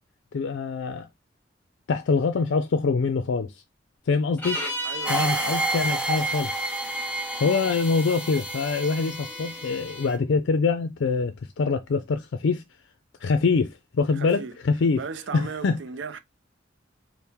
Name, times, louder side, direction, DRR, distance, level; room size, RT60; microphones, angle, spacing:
voice 1, 0.3-1.1 1.9-3.6 4.1-4.6 5.1-6.5 7.4-12.6 13.2-15.0 15.3-15.8, left 4 dB, 70° left, 0.4 m, -24 dB
sound 1, 4.4-10.1, left 1 dB, 10° left, 1.2 m, -36 dB
voice 2, 4.8-5.9 14.1-14.5 14.9-16.2, right 5 dB, 70° right, 0.5 m, -37 dB
sound 2, 5.1-10.1, right 3 dB, 5° right, 0.6 m, -30 dB
4.5 x 2.1 x 3.4 m
head